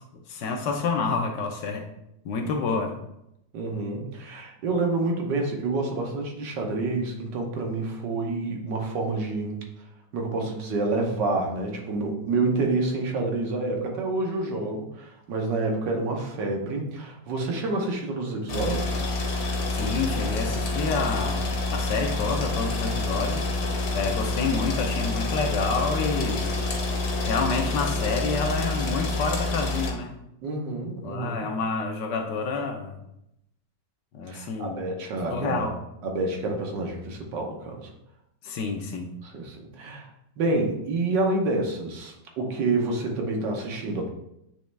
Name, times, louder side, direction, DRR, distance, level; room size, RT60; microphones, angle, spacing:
voice 1, 0.3-1.9 2.2-3.0 19.7-23.5 23.9-26.6 27.2-30.1 31.0-33.0 34.1-34.9 35.3-35.8 38.4-39.2, left 4 dB, 80° left, 3 dB, 1.5 m, -28 dB
voice 2, 3.5-9.6 10.1-19.1 30.4-31.5 34.3-35.7 36.0-37.9 39.2-40.1 40.4-44.1, right 3 dB, 85° right, 1 dB, 1.7 m, -28 dB
sound 1, 18.5-29.9, left 2 dB, 60° left, 1.4 m, -27 dB
9.1 x 3.1 x 3.3 m, 0.82 s
omnidirectional pair, 1.9 m